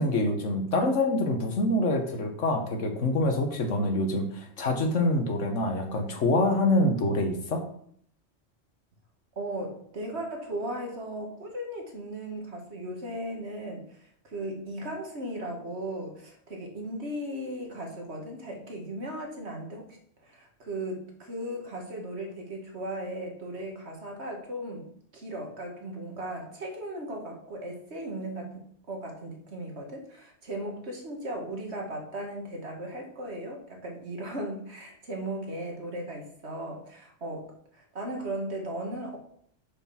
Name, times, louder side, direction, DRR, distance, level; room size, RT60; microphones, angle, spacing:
voice 1, 0.0-7.6, left 1 dB, 75° left, 5 dB, 1.6 m, -26 dB
voice 2, 9.4-24.9 25.1-39.2, right 1 dB, 60° right, 1 dB, 2.0 m, -37 dB
6.7 x 6.6 x 5.8 m, 0.64 s
omnidirectional pair, 1.3 m